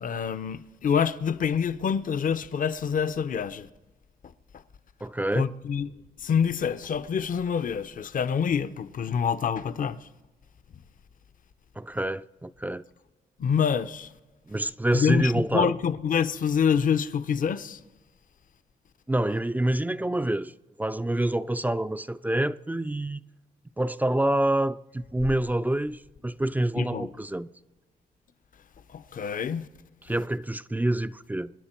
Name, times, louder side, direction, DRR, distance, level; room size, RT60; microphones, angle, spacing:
voice 1, 0.0-3.7 5.3-5.9 6.2-10.1 13.4-14.1 14.9-17.8 26.8-27.1 28.9-29.7, left 7 dB, 55° left, 0.7 m, -26 dB
voice 2, 5.0-5.5 11.8-12.8 14.5-15.7 19.1-23.2 23.8-27.5 30.1-31.5, right 1 dB, 10° right, 0.4 m, -27 dB
26.0 x 9.9 x 4.4 m
cardioid pair, 75°, 17 cm